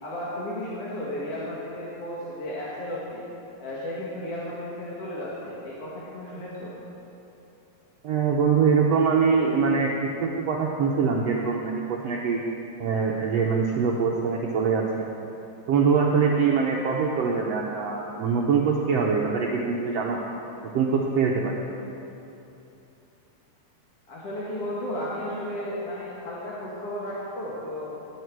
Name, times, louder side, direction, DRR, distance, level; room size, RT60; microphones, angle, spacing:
voice 1, 0.0-3.3 3.6-6.7 24.1-27.9, left 1 dB, 50° left, -7 dB, 2.4 m, -34 dB
voice 2, 8.0-12.4 12.8-14.8 15.7-20.2 20.7-21.5, right 5 dB, 80° right, -2 dB, 1.4 m, -23 dB
19.0 x 8.9 x 4.7 m, 2.8 s
omnidirectional pair, 4.0 m